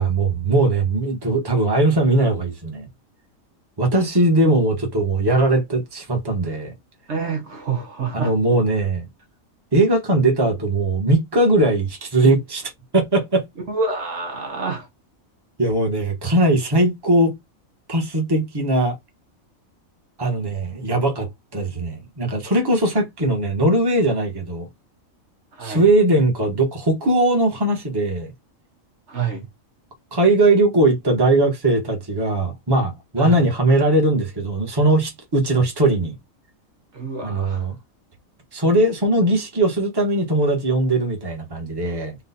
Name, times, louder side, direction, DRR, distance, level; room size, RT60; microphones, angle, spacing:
voice 1, 0.0-2.9 3.8-6.7 8.1-9.1 9.7-13.4 15.6-17.4 17.9-18.9 20.2-24.7 25.6-28.3 30.1-36.1 37.2-37.7 38.5-42.1, right 2 dB, 20° right, 1.2 m, -19 dB
voice 2, 7.1-8.3 13.7-14.9 25.5-25.8 29.1-29.5 33.2-33.5 36.9-37.6, right 5 dB, 60° right, 1.3 m, -27 dB
4.1 x 2.5 x 4.1 m
omnidirectional pair, 1.4 m